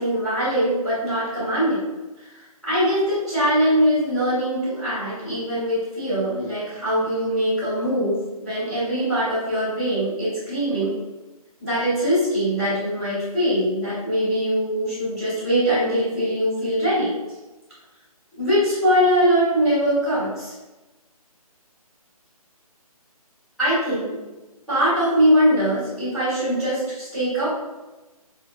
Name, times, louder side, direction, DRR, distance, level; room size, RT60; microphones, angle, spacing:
voice 1, 0.0-1.8 2.3-10.9 11.6-17.1 18.4-20.5 23.6-24.2 24.7-27.5, equal, ahead, -26 dB, 0.4 m, -22 dB
4.9 x 2.7 x 2.2 m, 1.1 s
hypercardioid pair, 175°, 19 cm